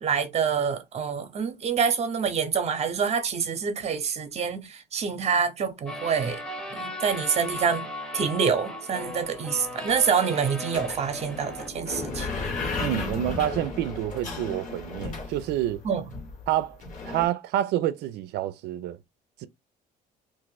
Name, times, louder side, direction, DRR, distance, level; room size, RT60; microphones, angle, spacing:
voice 1, 0.0-6.4 6.7-12.3 15.8-16.1, right 6 dB, 40° right, 0.8 m, -26 dB
sound 1, 5.9-11.7, left 1 dB, 5° left, 0.9 m, -37 dB
sound 2, 9.3-9.4 9.6-10.0 10.7-17.3, left 3 dB, 45° left, 1.2 m, -34 dB
voice 2, 12.8-15.8 16.5-16.8 17.0-19.0, right 13 dB, 80° right, 0.4 m, -28 dB
2.6 x 2.5 x 3.9 m
cardioid pair, 110°, 17 cm